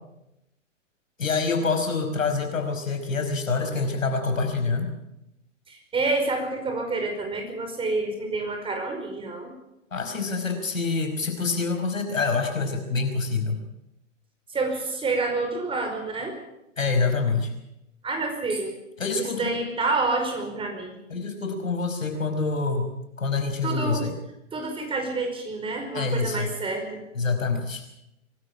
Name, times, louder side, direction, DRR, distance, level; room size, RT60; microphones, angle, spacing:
voice 1, 1.2-4.9 9.9-13.6 16.8-17.5 19.0-19.5 21.1-22.9 23.2-24.1 25.9-26.5 27.2-27.8, left 4 dB, 80° left, 6 dB, 5.4 m, -26 dB
voice 2, 5.7-9.5 14.5-16.4 18.0-18.7 19.1-21.0 23.6-24.0 24.5-27.0, right 3 dB, 15° right, 5 dB, 5.1 m, -28 dB
23.5 x 13.5 x 8.7 m, 0.87 s
hypercardioid pair, 120°, 39 cm